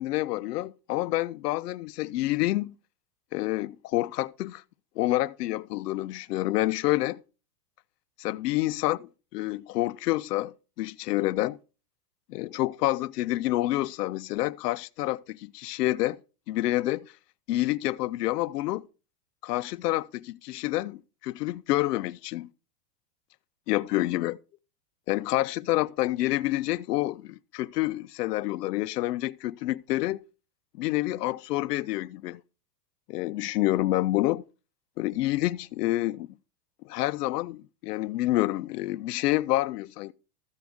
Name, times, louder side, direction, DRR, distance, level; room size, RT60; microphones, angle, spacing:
voice 1, 0.0-2.7 3.3-4.6 5.0-7.2 8.2-11.6 12.3-16.2 16.5-17.1 17.5-18.9 19.4-22.5 23.7-24.4 25.1-30.2 30.8-32.4 33.1-34.4 35.0-36.4 36.8-40.1, left 17 dB, 85° left, 0.6 m, -28 dB
14.0 x 6.3 x 3.5 m
supercardioid pair, 165°, 47 cm